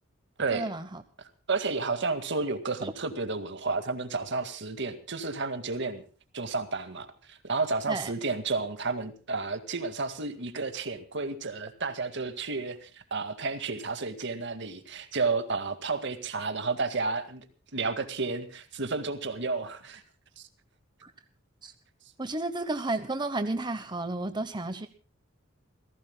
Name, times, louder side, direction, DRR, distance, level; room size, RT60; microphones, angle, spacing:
voice 1, 0.5-1.0 2.8-2.9 7.9-8.1 21.0-21.1 21.6-21.7 22.2-24.9, right 2 dB, 25° right, 9 dB, 1.0 m, -32 dB
voice 2, 1.5-6.0 6.3-17.5 17.7-20.0 20.4-20.5, right 4 dB, 65° right, 9 dB, 2.0 m, -31 dB
29.0 x 16.5 x 2.3 m, 0.37 s
head